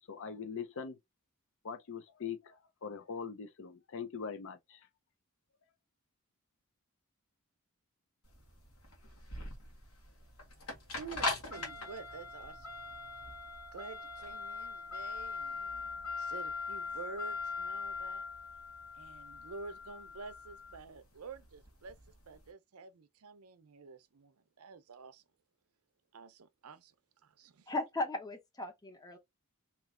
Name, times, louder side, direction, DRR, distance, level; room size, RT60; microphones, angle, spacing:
voice 1, 0.1-1.0 1.6-4.9, left 6 dB, 60° left, 0.5 m, -42 dB
sound 1, 8.3-22.4, left 3 dB, 80° left, 1.5 m, -41 dB
voice 2, 11.0-12.7 13.7-18.2 18.9-22.0 22.3-25.2 26.1-26.9 27.2-27.7, right 4 dB, 75° right, 0.6 m, -49 dB
voice 3, 27.7-29.2, left 2 dB, 15° left, 0.8 m, -37 dB
3.1 x 2.9 x 3.6 m
head